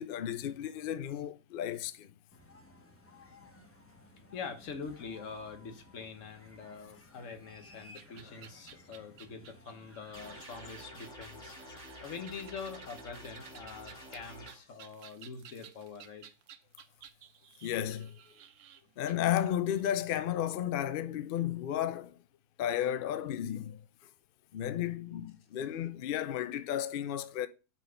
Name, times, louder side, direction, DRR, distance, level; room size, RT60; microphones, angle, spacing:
voice 1, 0.0-2.1 17.6-18.2 19.0-22.2 22.6-23.8 24.5-27.5, left 11 dB, 80° left, 0.4 m, -33 dB
sound 1, 2.3-10.4, left 2 dB, 10° left, 0.7 m, -57 dB
voice 2, 4.3-16.3, left 5 dB, 60° left, 1.4 m, -45 dB
sound 2, 7.9-19.8, right 9 dB, 70° right, 0.9 m, -55 dB
sound 3, 10.1-14.5, left 1 dB, 30° left, 3.5 m, -49 dB
6.0 x 4.0 x 5.6 m
omnidirectional pair, 1.6 m